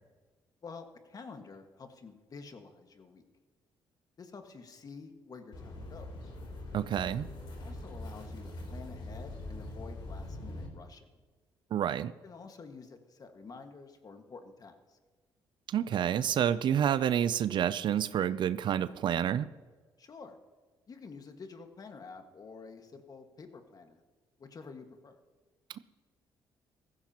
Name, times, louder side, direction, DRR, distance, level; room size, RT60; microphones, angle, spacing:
voice 1, 0.6-3.2 4.2-6.1 7.5-11.1 12.2-15.0 20.0-20.4 20.9-24.0 24.4-25.2, left 4 dB, 45° left, 6 dB, 1.7 m, -49 dB
sound 1, 5.5-10.7, left 1 dB, 65° left, 3.4 m, -43 dB
voice 2, 6.7-7.3 11.7-12.1 15.7-19.5, right 9 dB, 60° right, 16 dB, 0.5 m, -29 dB
15.5 x 14.5 x 3.0 m, 1.4 s
supercardioid pair, 65°, 9 cm